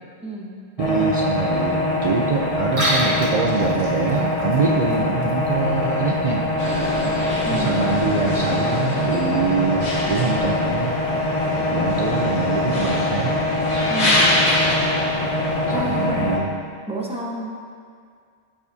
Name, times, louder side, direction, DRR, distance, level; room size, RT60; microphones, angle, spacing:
voice 1, 0.2-0.6 7.4-7.8 13.9-14.4 15.7-16.4 16.9-17.5, right 1 dB, 5° right, -3 dB, 1.0 m, -29 dB
sound 1, 0.8-16.4, left 2 dB, 35° left, 0.9 m, -23 dB
voice 2, 0.8-6.5 7.5-11.0 11.7-13.4 15.7-16.5, right 5 dB, 50° right, 0 dB, 0.4 m, -24 dB
Liquid, 2.6-7.6, right 1 dB, 85° right, 2.3 m, -31 dB
sound 2, 6.6-16.1, left 1 dB, 65° left, 1.5 m, -26 dB
15.0 x 5.1 x 2.7 m, 2.2 s
omnidirectional pair, 1.2 m